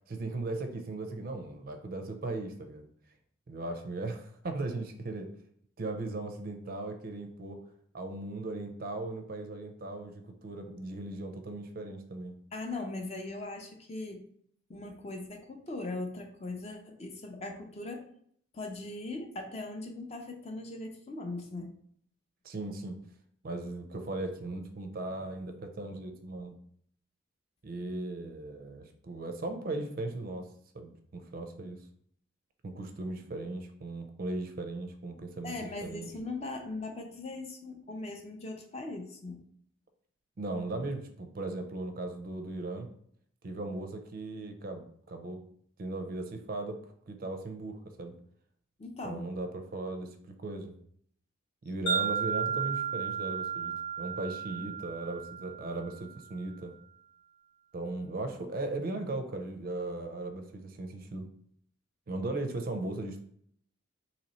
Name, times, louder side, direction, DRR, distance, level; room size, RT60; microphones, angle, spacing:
voice 1, 0.1-2.9 3.5-5.3 5.8-7.6 7.9-12.4 22.4-23.0 23.4-26.6 27.6-30.5 30.7-31.8 32.6-35.5 35.8-36.1 40.4-42.9 43.4-45.4 45.8-48.2 49.0-50.7 51.6-56.7 57.7-61.3 62.1-63.2, right 2 dB, 45° right, 6 dB, 0.4 m, -37 dB
voice 2, 12.5-14.2 14.7-18.0 18.5-21.7 35.4-39.5 48.8-49.3, left 2 dB, 30° left, 3 dB, 0.5 m, -39 dB
Wind chime, 51.9-56.1, right 7 dB, 85° left, 1.6 m, -34 dB
2.9 x 2.9 x 4.1 m, 0.64 s
head